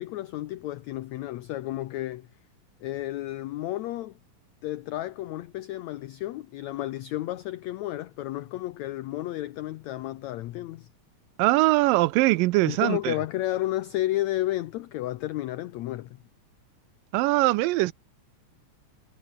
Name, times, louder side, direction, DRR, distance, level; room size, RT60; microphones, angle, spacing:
voice 1, 0.0-2.3 2.8-4.2 4.6-10.9 12.6-16.2, left 15 dB, 75° left, 1.7 m, -32 dB
voice 2, 11.4-13.1 17.1-17.9, right 19 dB, 85° right, 2.3 m, -22 dB
omnidirectional pair, 4.0 m